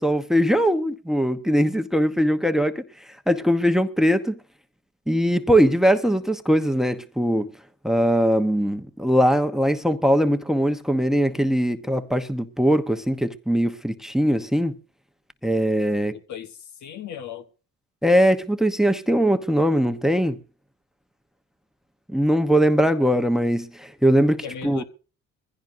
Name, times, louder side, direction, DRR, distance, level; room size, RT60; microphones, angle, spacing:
voice 1, 0.0-2.8 3.3-4.4 5.1-7.5 7.8-14.7 15.4-16.1 18.0-20.4 22.1-24.8, equal, ahead, 1.0 m, -21 dB
voice 2, 16.1-17.5 24.4-24.8, left 8 dB, 70° left, 1.4 m, -37 dB
21.5 x 15.5 x 2.7 m
cardioid pair, 90°, 30 cm